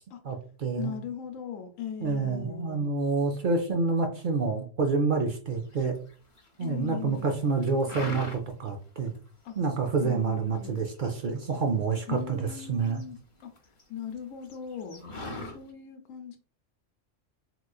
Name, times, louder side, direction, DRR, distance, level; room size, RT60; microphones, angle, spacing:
voice 1, 0.2-0.9 2.0-6.0 6.6-9.1 9.6-13.0, right 4 dB, 60° right, 0.5 m, -28 dB
voice 2, 0.8-2.9 6.6-7.3 9.4-9.5 10.0-10.8 12.1-13.5 13.9-15.0 15.4-16.4, left 8 dB, 90° left, 1.0 m, -39 dB
sound 1, 5.7-6.5 6.9-7.3 7.6-8.7 9.1-9.2 9.5-10.0 10.5-12.3 12.6-13.8 14.1-14.2 14.4-15.6, left 2 dB, 35° left, 0.5 m, -40 dB
3.7 x 3.0 x 2.3 m
omnidirectional pair, 1.3 m